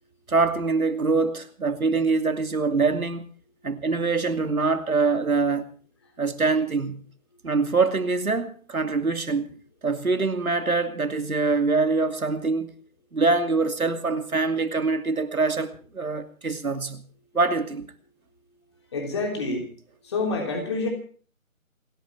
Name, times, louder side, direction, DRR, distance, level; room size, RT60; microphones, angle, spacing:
voice 1, 0.3-3.3 3.6-5.7 6.2-7.1 7.4-9.5 9.8-12.7 13.1-17.9, right 4 dB, 80° right, 2.7 m, -24 dB
voice 2, 18.9-19.7 20.0-20.9, left 3 dB, 20° left, 3.4 m, -27 dB
28.5 x 10.5 x 4.7 m
figure-of-eight pair, 170°, 42 cm